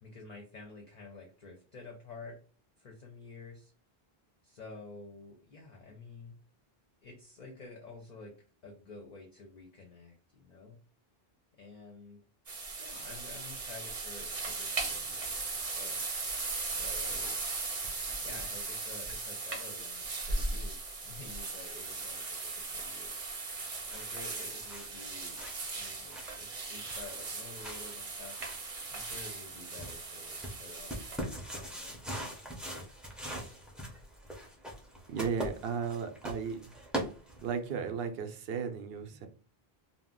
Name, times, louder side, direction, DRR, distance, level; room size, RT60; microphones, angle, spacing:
voice 1, 0.0-2.4 2.8-3.7 4.4-6.4 7.0-8.4 8.6-10.8 11.5-12.2 12.8-16.1 16.7-17.4 18.2-20.8 21.0-23.3 23.9-28.4 28.9-32.0, left 3 dB, 50° left, 0.6 m, -50 dB
sound 1, 12.5-31.2, right 3 dB, 40° right, 0.6 m, -38 dB
sound 2, 23.5-37.7, right 1 dB, ahead, 0.5 m, -43 dB
voice 2, 35.1-36.7 37.4-39.3, right 6 dB, 75° right, 0.8 m, -35 dB
2.4 x 2.1 x 3.6 m
omnidirectional pair, 1.0 m